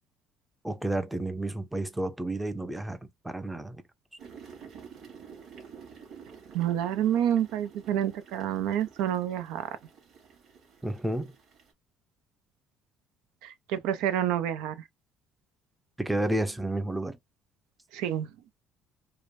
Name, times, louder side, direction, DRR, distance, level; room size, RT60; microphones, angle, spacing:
voice 1, 0.6-3.8 10.8-11.3 16.0-17.2, right 1 dB, 5° right, 0.6 m, -31 dB
sound 1, 4.2-11.7, right 6 dB, 60° right, 2.8 m, -50 dB
voice 2, 6.5-9.8 13.4-14.8 17.9-18.3, right 10 dB, 85° right, 0.7 m, -28 dB
4.9 x 2.2 x 2.6 m
cardioid pair, 120°, 0 cm